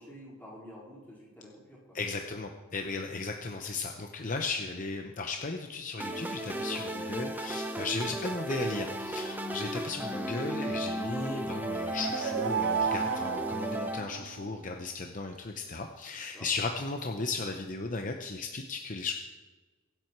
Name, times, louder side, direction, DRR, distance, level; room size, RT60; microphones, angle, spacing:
voice 1, 0.0-2.0 16.3-16.5, equal, 10° left, -6 dB, 4.4 m, -49 dB
voice 2, 1.9-19.1, left 3 dB, 40° left, 4 dB, 0.8 m, -36 dB
sound 1, 6.0-14.0, right 1 dB, 10° right, 0.8 m, -35 dB
sound 2, 11.7-14.6, right 7 dB, 55° right, 0.3 m, -33 dB
23.0 x 7.8 x 4.6 m, 1.4 s
head